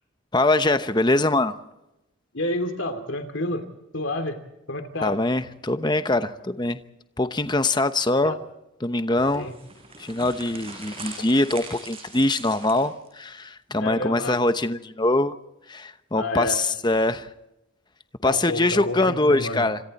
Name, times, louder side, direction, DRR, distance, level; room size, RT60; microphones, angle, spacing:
voice 1, 0.3-1.6 5.0-6.8 7.2-8.4 8.8-9.5 10.0-15.3 15.7-17.3 18.2-19.8, left 2 dB, 20° left, 10 dB, 0.9 m, -23 dB
voice 2, 2.3-3.7 3.9-4.4 4.7-5.2 8.2-8.4 9.3-9.5 13.8-14.4 16.2-16.6 18.2-19.7, left 1 dB, 65° left, 7 dB, 2.6 m, -29 dB
sound 1, 9.1-13.1, right 3 dB, 25° right, 6.0 m, -41 dB
27.0 x 26.0 x 4.2 m, 0.91 s
head